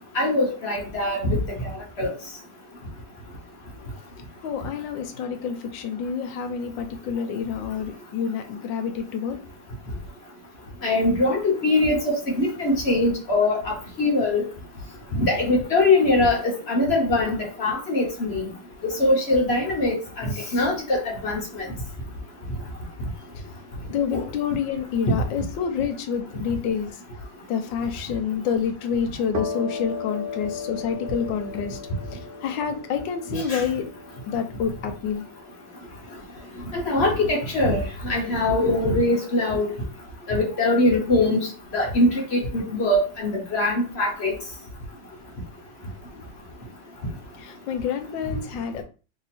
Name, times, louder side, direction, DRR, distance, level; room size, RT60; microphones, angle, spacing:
voice 1, 0.1-1.7 2.0-2.1 10.8-14.4 15.1-18.5 19.0-21.4 24.1-24.2 33.3-33.6 36.7-39.7 40.3-44.3, left 2 dB, 45° left, 0 dB, 0.8 m, -22 dB
voice 2, 4.4-9.4 23.9-27.0 27.5-31.8 32.1-33.9 34.3-35.2 47.4-48.8, left 7 dB, 75° left, 6 dB, 1.3 m, -28 dB
sound 1, 29.3-36.8, left 4 dB, 70° right, 1.5 m, -37 dB
3.4 x 2.8 x 4.1 m, 0.34 s
omnidirectional pair, 2.2 m